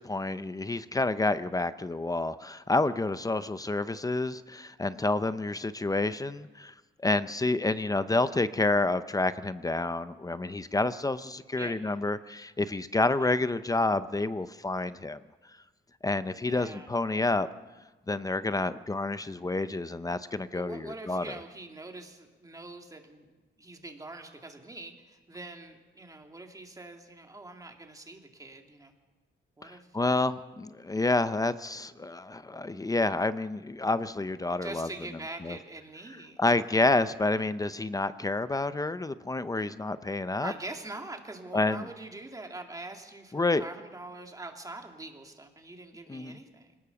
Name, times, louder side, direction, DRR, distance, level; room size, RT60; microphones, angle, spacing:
voice 1, 0.0-6.7 7.0-15.2 16.0-17.5 18.1-21.3 29.6-34.9 35.4-35.6 36.4-40.5 41.5-41.9 43.3-43.6 46.1-46.4, left 2 dB, 20° left, 13 dB, 0.6 m, -29 dB
voice 2, 16.5-17.3 20.5-28.9 29.6-29.9 34.6-36.9 40.4-46.8, right 2 dB, 15° right, 3 dB, 2.4 m, -44 dB
25.0 x 18.5 x 7.0 m, 1.3 s
wide cardioid pair, 140°, 20 cm